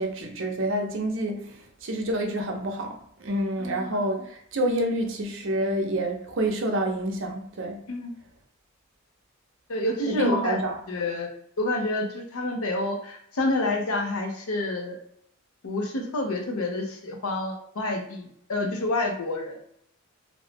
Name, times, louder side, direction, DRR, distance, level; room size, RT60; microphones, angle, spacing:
voice 1, 0.0-1.6 1.8-7.8 10.1-10.8, right 1 dB, 60° right, 3 dB, 0.6 m, -28 dB
voice 2, 3.6-4.0 7.9-8.1 9.7-10.6 10.9-11.3 11.6-15.0 15.6-19.6, left 2 dB, 80° left, 3 dB, 0.6 m, -28 dB
2.6 x 2.1 x 3.3 m, 0.69 s
head